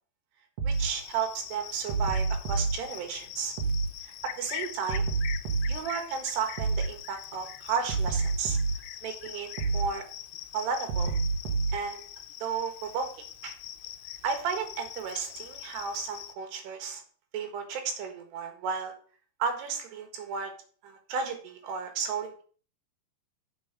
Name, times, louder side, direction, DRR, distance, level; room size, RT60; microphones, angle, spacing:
sound 1, 0.6-0.9 1.9-2.7 3.6-3.9 4.9-5.8 6.6-6.9 7.9-8.8 9.6-9.9 10.9-11.8, right 4 dB, 55° right, 2.0 m, -27 dB
voice 1, 0.6-3.5 4.4-5.1 5.7-8.6 9.0-10.1 10.5-11.2 11.7-12.0 12.4-13.1 13.4-13.5 14.2-17.0 17.3-18.9 19.4-20.5 20.8-22.4, right 6 dB, 75° right, 5 dB, 3.7 m, -33 dB
Cricket, 0.7-16.3, left 12 dB, 75° left, 2.6 m, -43 dB
7.4 x 6.0 x 7.5 m, 0.43 s
omnidirectional pair, 4.8 m